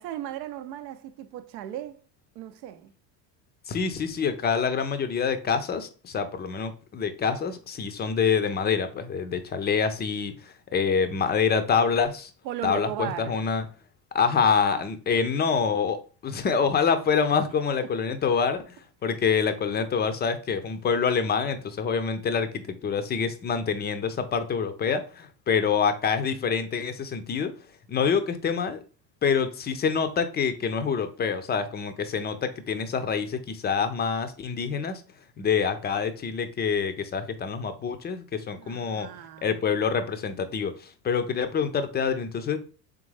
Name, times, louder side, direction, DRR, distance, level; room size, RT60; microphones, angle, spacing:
voice 1, 0.0-2.0 2.3-2.9 12.4-13.5 38.5-39.6, right 12 dB, 85° right, 0.6 m, -36 dB
voice 2, 3.7-12.3 12.6-13.6 14.1-18.6 19.0-27.5 27.9-28.8 29.2-35.0 35.4-39.1 39.4-42.6, left 6 dB, 20° left, 0.4 m, -26 dB
3.6 x 3.4 x 3.2 m
supercardioid pair, 85°, 49 cm